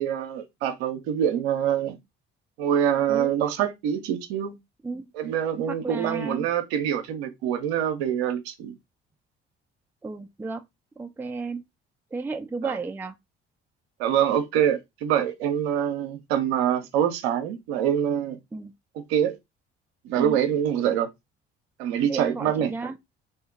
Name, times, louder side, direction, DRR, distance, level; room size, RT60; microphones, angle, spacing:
voice 1, 0.0-2.0 2.6-4.5 5.1-8.7 12.6-12.8 14.0-18.4 19.1-19.4 20.0-21.1 21.8-22.7, right 9 dB, 75° right, 0.7 m, -25 dB
voice 2, 5.7-6.5 10.0-10.7 11.0-11.6 12.1-13.1 18.5-18.7 20.2-20.4 22.0-23.0, right 4 dB, 5° right, 0.4 m, -33 dB
2.8 x 2.7 x 3.6 m
figure-of-eight pair, 45°, 32 cm